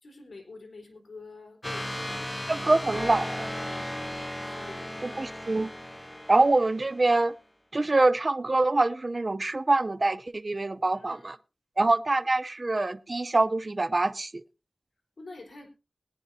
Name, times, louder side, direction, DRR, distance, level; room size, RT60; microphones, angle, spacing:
voice 1, 0.0-2.4 3.6-4.1 4.4-5.2 10.9-11.3 15.2-15.7, left 3 dB, 70° left, 3.8 m, -47 dB
sound 1, 1.6-7.2, left 1 dB, 10° left, 0.5 m, -36 dB
voice 2, 2.5-3.5 5.0-5.7 6.3-7.3 7.7-11.4 11.8-14.4, right 2 dB, 40° right, 0.6 m, -25 dB
21.0 x 9.9 x 2.7 m
wide cardioid pair, 55°, 0 cm